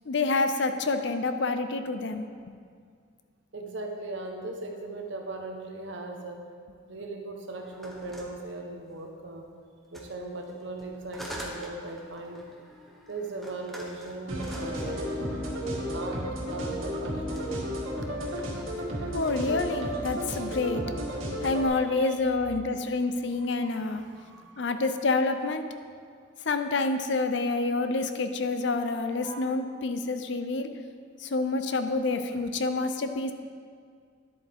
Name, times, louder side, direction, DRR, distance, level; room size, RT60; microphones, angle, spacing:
voice 1, 0.1-2.2 19.1-20.8 21.4-24.0 24.6-25.6 26.5-30.7 31.2-33.3, left 3 dB, 60° left, 8 dB, 0.5 m, -28 dB
voice 2, 3.5-6.4 6.9-9.4 9.9-12.4 13.1-15.1 15.9-16.2 16.5-17.6 20.1-20.6 21.7-22.2 22.7-24.7 29.2-29.5, right 2 dB, 65° right, 3 dB, 1.0 m, -39 dB
sound 1, 7.6-9.2 9.8-16.5 17.2-17.6 18.0-20.0, equal, ahead, 0.9 m, -47 dB
sound 2, 14.3-21.7, equal, 90° right, 1.9 m, -33 dB
10.5 x 7.9 x 3.5 m, 2.1 s
head